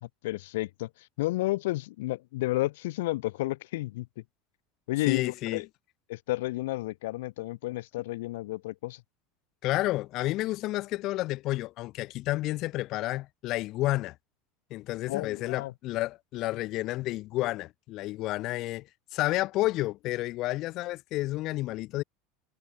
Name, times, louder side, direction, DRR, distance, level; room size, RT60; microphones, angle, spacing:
voice 1, 0.0-0.9 1.2-4.1 4.9-5.6 6.1-9.0 15.1-15.7, left 18 dB, 80° left, 2.3 m, -31 dB
voice 2, 5.1-5.6 9.6-14.1 14.7-18.9 19.1-22.0, left 17 dB, 55° left, 1.5 m, -30 dB
supercardioid pair, 105°, 0 cm